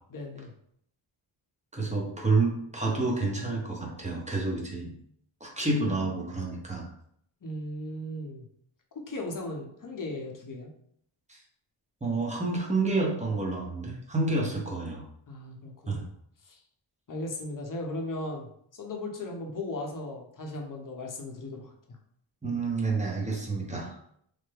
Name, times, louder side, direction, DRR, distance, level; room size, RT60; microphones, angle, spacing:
voice 1, 0.1-0.5 7.4-8.5 9.1-10.7 15.3-16.0 16.4-16.6 17.1-21.7, left 1 dB, 40° left, 1 dB, 0.7 m, -37 dB
voice 2, 1.7-4.9 5.4-6.9 11.3-11.4 12.0-15.0 15.9-16.0 22.4-24.0, right 3 dB, 15° right, -2 dB, 0.7 m, -29 dB
3.3 x 2.1 x 3.3 m, 0.69 s
cardioid pair, 85°, 50 cm